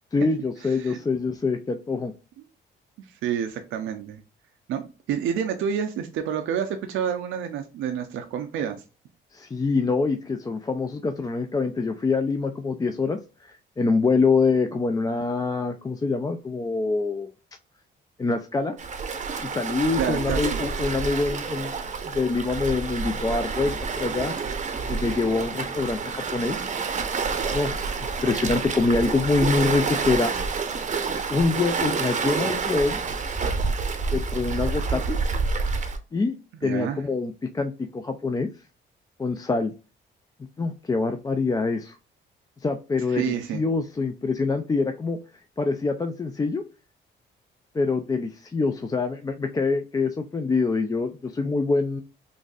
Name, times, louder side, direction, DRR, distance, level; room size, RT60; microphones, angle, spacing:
voice 1, 0.1-2.1 9.3-17.3 18.2-18.7 19.4-21.7 22.0-24.3 24.9-26.7 27.5-27.8 28.2-30.3 31.3-33.0 34.1-35.2 36.1-36.4 36.6-38.5 39.2-39.7 40.6-42.0 42.6-45.2 45.6-46.6 47.7-52.0, left 4 dB, 20° left, 6 dB, 0.3 m, -25 dB
voice 2, 0.6-1.0 3.1-4.2 4.7-8.8 15.1-15.2 20.0-20.6 36.6-37.0 43.1-43.6, right 8 dB, 80° right, 6 dB, 0.5 m, -29 dB
Waves surf, 18.8-36.0, right 4 dB, 35° right, 0.6 m, -28 dB
3.9 x 2.5 x 2.3 m, 0.33 s
cardioid pair, 90°, 20 cm